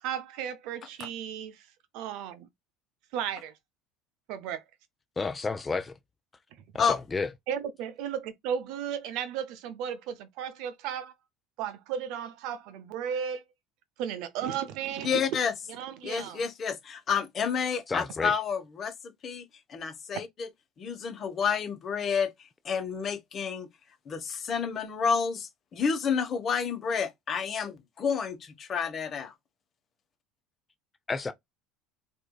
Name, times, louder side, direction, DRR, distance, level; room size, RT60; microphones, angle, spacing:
voice 1, 0.0-1.7 1.9-2.5 3.1-3.5 4.3-4.6 7.5-11.1 11.6-13.4 14.0-15.2 15.7-16.4, right 8 dB, 70° right, 0.7 m, -34 dB
voice 2, 5.2-5.9 6.7-7.3 17.9-18.3 31.1-31.3, left 4 dB, 20° left, 0.6 m, -31 dB
voice 3, 15.0-15.5 16.0-18.9 19.2-20.5 20.8-22.3 22.6-23.7 24.1-29.3, left 6 dB, 40° left, 1.2 m, -30 dB
4.4 x 2.7 x 2.3 m
supercardioid pair, 105°, 0 cm